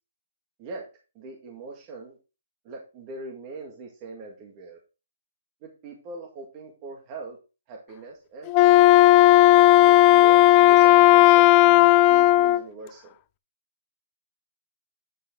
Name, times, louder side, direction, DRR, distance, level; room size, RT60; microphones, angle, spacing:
voice 1, 1.1-2.2 2.6-4.8 5.6-7.4 7.7-9.0 9.5-13.0, right 3 dB, 25° right, 0 dB, 1.8 m, -41 dB
Wind instrument woodwind instrument, 8.5-12.6, left 16 dB, 20° left, 0.4 m, -15 dB
9.4 x 5.5 x 3.6 m, 0.31 s
hypercardioid pair, 170°, 0 cm